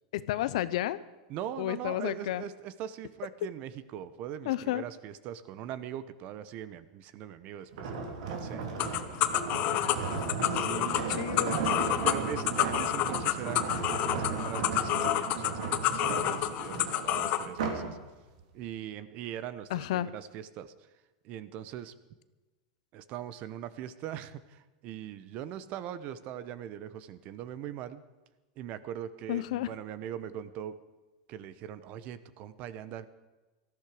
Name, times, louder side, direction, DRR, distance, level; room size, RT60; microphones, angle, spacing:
voice 1, 0.1-1.0 1.6-2.4 4.5-4.8 9.7-9.9 10.8-11.5 19.7-20.1 29.3-29.7, left 14 dB, 70° left, 16 dB, 0.8 m, -32 dB
voice 2, 1.3-9.8 10.5-11.0 11.3-11.7 12.0-18.0 18.5-20.7 21.2-21.9 22.9-28.0 28.6-30.7 31.3-33.1, right 10 dB, 40° right, 15 dB, 1.0 m, -41 dB
sound 1, 7.7-17.9 18.4-18.7, right 5 dB, 75° right, 3.1 m, -35 dB
sound 2, 8.8-17.5, left 13 dB, 40° left, 1.0 m, -29 dB
18.5 x 14.0 x 5.0 m, 1.2 s
supercardioid pair, 150°, 4 cm